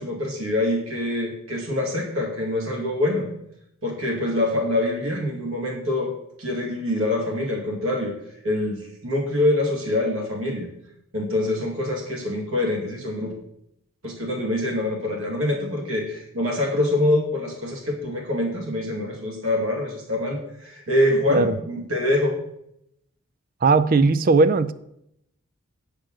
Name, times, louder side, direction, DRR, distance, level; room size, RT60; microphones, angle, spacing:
voice 1, 0.0-3.3 3.8-6.1 6.4-8.1 8.4-10.7 11.1-13.3 14.0-22.4, left 1 dB, 70° right, -1 dB, 2.4 m, -25 dB
voice 2, 23.6-24.7, right 3 dB, 40° right, 14 dB, 0.4 m, -18 dB
8.9 x 5.0 x 6.3 m, 0.79 s
head